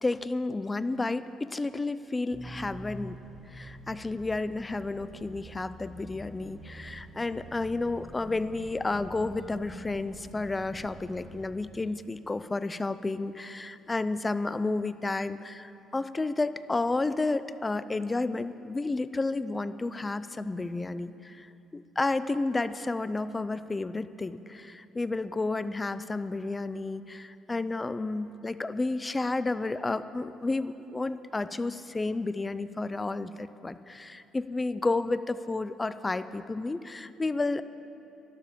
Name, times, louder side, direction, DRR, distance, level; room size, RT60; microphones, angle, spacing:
voice 1, 0.0-3.2 3.5-37.6, left 3 dB, 20° left, 14 dB, 0.5 m, -31 dB
sound 1, 2.3-11.5, right 1 dB, 10° right, 1.4 m, -46 dB
12.5 x 12.0 x 7.2 m, 2.9 s
supercardioid pair, 85°, 0 cm